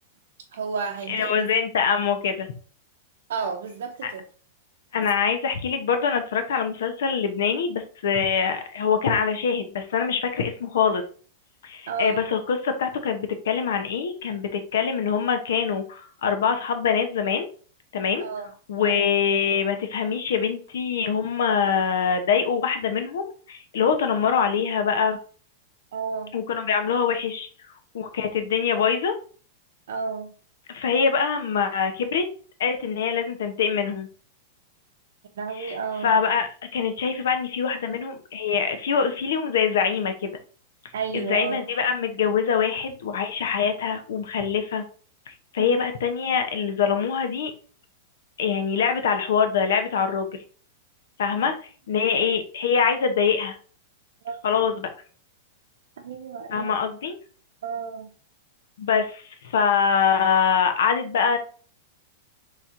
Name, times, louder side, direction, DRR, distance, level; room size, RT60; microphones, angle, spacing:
voice 1, 0.5-1.5 3.3-4.2 11.9-12.3 18.2-18.5 18.8-19.1 25.9-26.3 29.9-30.3 35.4-36.1 40.9-41.6 45.6-45.8 51.4-51.6 54.2-54.6 56.0-56.8 57.6-58.1, right 5 dB, 80° right, 0.6 m, -32 dB
voice 2, 1.1-2.5 4.0-4.1 4.9-11.0 11.6-17.5 17.9-18.2 18.7-25.2 26.3-27.5 27.9-29.1 30.7-32.2 32.6-34.1 35.6-35.8 36.0-40.3 41.1-44.8 45.3-47.5 48.4-50.3 51.2-51.5 51.9-53.6 54.4-54.9 56.5-57.2 58.8-59.2 59.5-61.4, left 6 dB, 75° left, 0.9 m, -24 dB
4.3 x 3.1 x 3.7 m
supercardioid pair, 170°, 0 cm